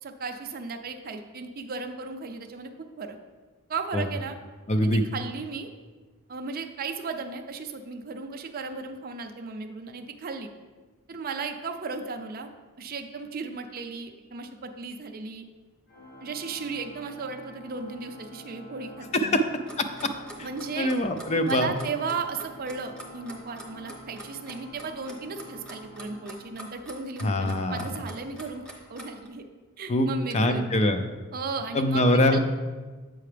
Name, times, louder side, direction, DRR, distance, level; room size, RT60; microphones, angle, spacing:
voice 1, 0.0-2.7 3.0-3.2 3.7-4.4 4.8-5.7 6.3-10.5 11.1-12.5 12.8-15.4 16.2-19.4 20.4-20.9 21.5-28.6 28.9-29.5 29.8-30.7 31.3-32.4, right 4 dB, 40° right, 5 dB, 0.5 m, -35 dB
voice 2, 4.7-5.0 19.1-19.4 19.8-19.9 20.4-20.5 20.8-21.7 27.2-27.8 29.9-30.1 30.3-31.0 31.7-32.4, left 1 dB, 30° left, 8 dB, 0.4 m, -23 dB
Organ, 15.9-27.0, equal, 45° left, 1.2 m, -47 dB
Clock, 19.7-29.3, equal, 5° left, 0.9 m, -44 dB
7.6 x 5.8 x 3.3 m, 1.3 s
head